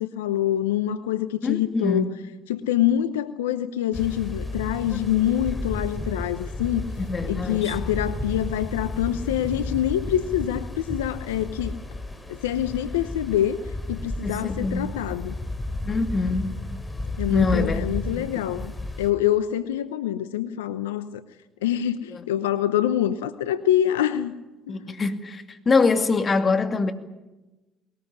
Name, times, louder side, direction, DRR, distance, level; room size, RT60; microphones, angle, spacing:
voice 1, 0.0-2.0 2.5-6.9 7.3-11.7 12.3-15.3 17.2-18.7 19.0-21.2 21.6-24.3 24.7-24.8, left 11 dB, 85° left, 0.8 m, -25 dB
voice 2, 1.4-2.2 7.0-7.8 14.2-14.9 15.8-16.7 17.3-17.9 18.2-18.4 22.1-22.2 24.7-26.9, left 3 dB, 35° left, 2.4 m, -24 dB
sound 1, 3.9-19.1, left 1 dB, 15° left, 3.6 m, -33 dB
21.0 x 19.5 x 9.7 m
hypercardioid pair, 60°, 0 cm